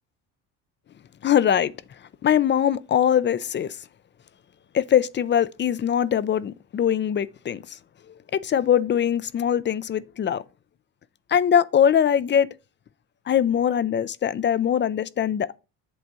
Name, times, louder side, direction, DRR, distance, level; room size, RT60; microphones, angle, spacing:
voice 1, 1.2-1.7 2.2-3.8 4.7-7.8 8.3-10.4 11.3-12.5 13.3-15.6, left 9 dB, 25° left, 0.4 m, -22 dB
8.1 x 3.4 x 6.2 m
hypercardioid pair, 65°, 48 cm